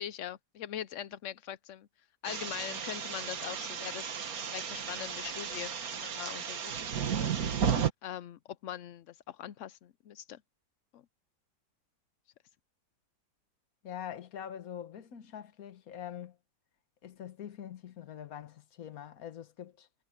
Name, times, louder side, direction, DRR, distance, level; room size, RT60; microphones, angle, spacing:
voice 1, 0.0-1.9 2.2-4.1 4.5-7.3 8.0-10.4 10.9-11.0, left 11 dB, 90° left, 0.6 m, -42 dB
sound 1, 2.2-7.9, right 7 dB, 55° right, 1.7 m, -34 dB
voice 2, 13.8-16.4 17.0-19.9, left 9 dB, 55° left, 1.5 m, -44 dB
omnidirectional pair, 1.9 m